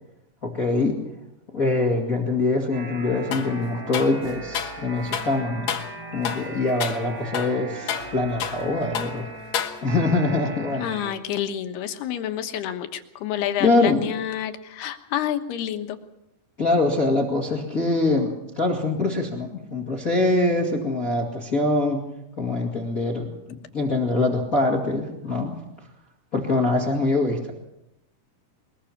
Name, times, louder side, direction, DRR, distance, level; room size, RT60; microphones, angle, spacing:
voice 1, 0.4-1.0 1.5-5.7 6.1-9.3 9.8-10.9 13.6-14.0 16.6-22.0 22.4-23.3 23.7-25.5 26.3-27.5, left 2 dB, 25° left, 0 dB, 2.0 m, -23 dB
sound 1, 2.7-11.1, right 3 dB, 85° right, 6.3 m, -38 dB
sound 2, 3.3-3.5 3.9-4.8 5.1-5.3 5.7-5.9 6.2-6.5 6.8-7.0 7.3-8.7 8.9-9.2 9.5-10.1, left 9 dB, 60° left, 2.0 m, -30 dB
voice 2, 10.8-16.0, left 11 dB, 80° left, 7 dB, 3.3 m, -29 dB
22.5 x 21.5 x 5.9 m, 0.87 s
omnidirectional pair, 4.6 m